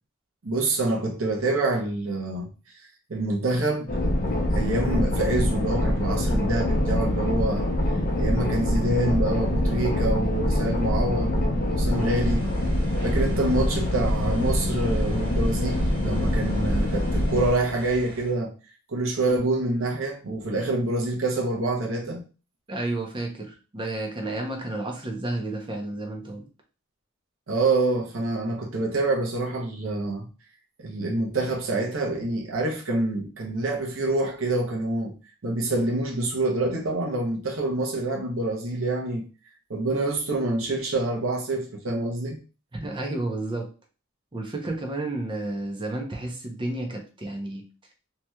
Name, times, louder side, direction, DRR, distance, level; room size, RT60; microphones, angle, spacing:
voice 1, 0.4-2.5 3.1-4.0 4.5-7.7 8.2-12.4 13.0-18.5 18.9-22.2 27.5-30.3 30.8-35.1 35.4-39.2 39.7-42.4, right 2 dB, 70° right, 0.7 m, -26 dB
sound 1, 3.9-17.5, left 1 dB, 40° left, 0.6 m, -24 dB
sound 2, 11.8-18.3, equal, 45° right, 1.6 m, -40 dB
voice 2, 22.7-26.4 42.8-43.7 44.3-47.6, right 2 dB, 25° right, 0.7 m, -31 dB
3.1 x 2.8 x 2.3 m
head